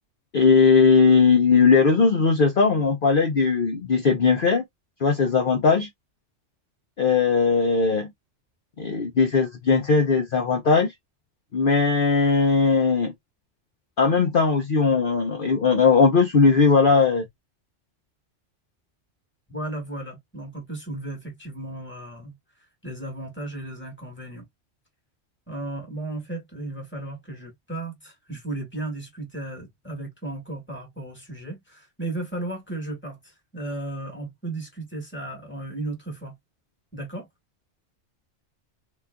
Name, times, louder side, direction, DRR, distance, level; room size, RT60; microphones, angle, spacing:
voice 1, 0.3-4.6 5.0-5.9 7.0-8.1 8.8-10.9 11.5-13.1 14.0-17.2, left 5 dB, 50° left, 0.9 m, -19 dB
voice 2, 19.5-22.3 22.8-24.4 25.5-33.2 33.5-36.3 36.9-37.3, right 2 dB, 10° left, 1.5 m, -35 dB
3.8 x 3.0 x 2.2 m
omnidirectional pair, 1.2 m